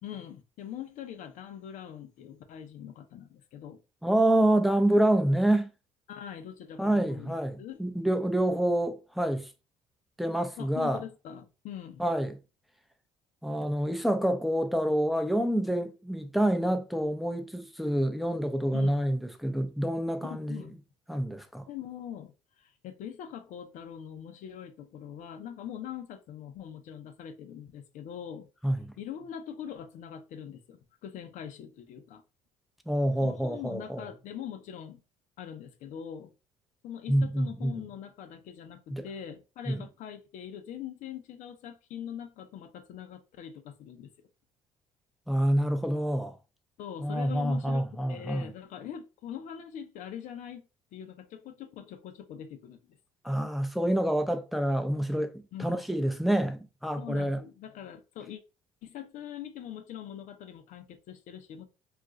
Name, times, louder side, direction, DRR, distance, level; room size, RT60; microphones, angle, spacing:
voice 1, 0.0-3.8 6.1-7.8 10.6-12.0 18.7-18.9 20.2-20.8 21.7-28.5 29.0-32.2 33.2-35.0 35.4-36.3 36.8-44.1 46.8-50.7 50.9-52.8 55.5-55.8 57.0-58.4 58.8-61.6, left 9 dB, 65° left, 0.6 m, -42 dB
voice 2, 4.0-5.7 6.8-9.5 10.2-11.0 12.0-12.4 13.4-20.6 21.1-21.6 28.6-28.9 32.9-34.0 37.1-37.8 38.9-39.1 39.7-39.8 45.3-46.4 47.0-48.5 53.2-57.4, right 1 dB, ahead, 0.5 m, -27 dB
2.4 x 2.3 x 3.8 m
hypercardioid pair, 60°, 14 cm